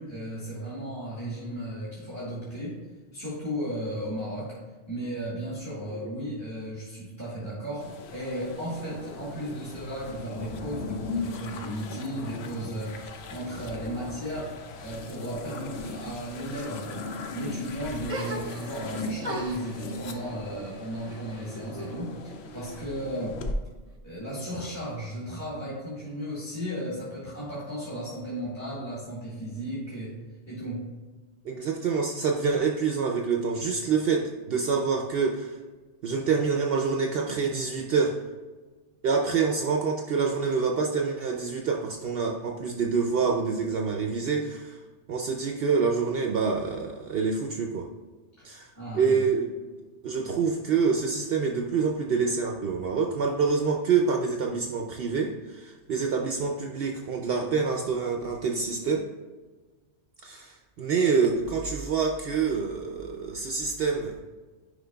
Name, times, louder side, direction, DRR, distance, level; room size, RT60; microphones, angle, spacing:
voice 1, 0.0-2.8 3.1-4.5 4.9-14.5 14.8-17.0 17.3-23.4 24.0-30.2 30.5-30.8 48.4-48.5 48.7-49.2, equal, 15° left, -8 dB, 1.6 m, -35 dB
sound 1, 7.8-23.5, left 3 dB, 70° left, 0.9 m, -38 dB
sound 2, 18.1-18.9 19.2-22.0 22.3-23.1, right 1 dB, 35° right, 0.8 m, -38 dB
voice 2, 31.4-35.6 36.0-38.2 39.0-44.8 45.1-47.9 48.4-49.5 50.0-59.1 60.2-64.2, right 5 dB, 65° right, 2 dB, 0.7 m, -26 dB
10.0 x 5.0 x 2.3 m, 1.3 s
omnidirectional pair, 1.2 m